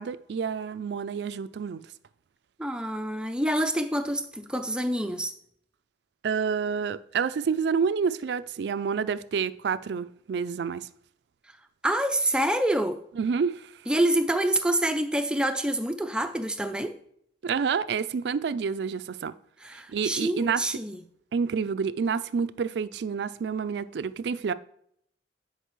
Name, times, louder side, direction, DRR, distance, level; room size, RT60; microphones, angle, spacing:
voice 1, 0.0-1.8 6.2-10.9 13.2-13.7 17.4-19.3 19.9-20.6 21.3-24.5, right 6 dB, 70° right, 0.3 m, -28 dB
voice 2, 2.6-5.3 11.8-13.0 13.9-16.9 19.6-21.0, right 1 dB, 5° right, 0.4 m, -27 dB
10.0 x 4.7 x 3.1 m
head